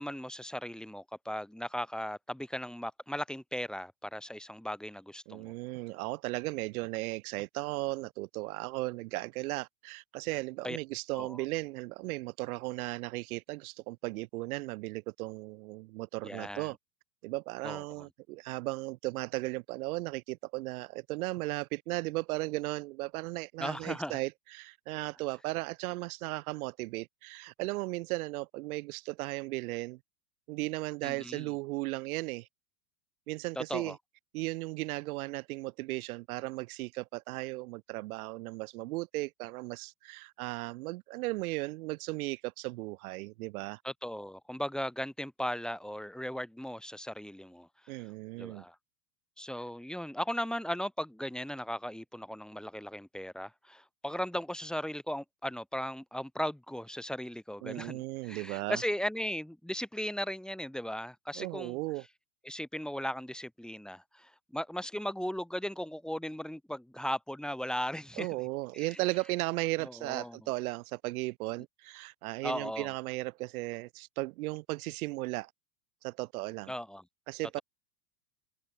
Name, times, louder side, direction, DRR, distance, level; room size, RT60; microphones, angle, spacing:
voice 1, 0.0-5.5 10.6-10.8 11.2-11.4 16.2-16.7 17.6-17.8 23.6-24.2 31.0-31.5 33.6-34.0 43.8-47.7 48.4-48.8 49.4-61.8 62.5-68.3 68.7-69.0 69.8-70.4 72.4-72.9 76.7-77.0, equal, ahead, 5.3 m, -37 dB
voice 2, 5.3-16.8 17.2-30.0 30.5-32.5 33.3-34.0 34.3-43.8 47.9-48.6 57.6-58.8 61.4-62.0 68.2-75.5 76.0-76.7 77.3-77.6, right 21 dB, 60° right, 3.9 m, -36 dB
hypercardioid pair, 130°, 49 cm